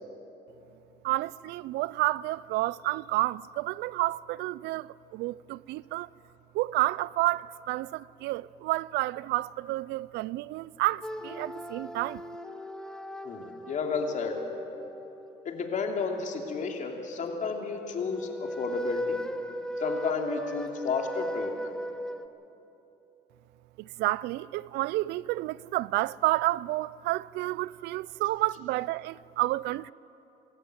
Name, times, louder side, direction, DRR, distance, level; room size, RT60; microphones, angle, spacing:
voice 1, 1.0-6.1 6.5-12.2 23.8-29.9, right 18 dB, 85° right, 0.4 m, -30 dB
sound 1, 11.0-15.9 17.9-22.2, equal, 5° left, 0.8 m, -37 dB
voice 2, 13.2-14.4 15.4-19.2 19.8-21.7, left 5 dB, 45° left, 2.9 m, -32 dB
24.5 x 13.5 x 9.1 m
cardioid pair, 110°, 17 cm